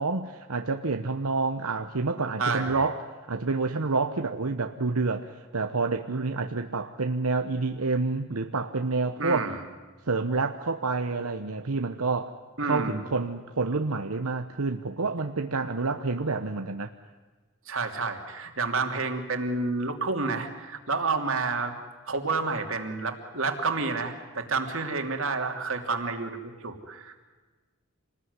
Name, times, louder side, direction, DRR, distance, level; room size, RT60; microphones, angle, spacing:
voice 1, 0.0-9.5 10.0-12.3 12.6-16.9, right 3 dB, 90° right, 6 dB, 1.0 m, -28 dB
voice 2, 2.4-2.8 9.2-9.6 12.6-13.0 17.7-21.7 22.1-27.2, right 3 dB, 65° right, 5 dB, 3.0 m, -29 dB
28.0 x 20.0 x 9.7 m, 1.3 s
head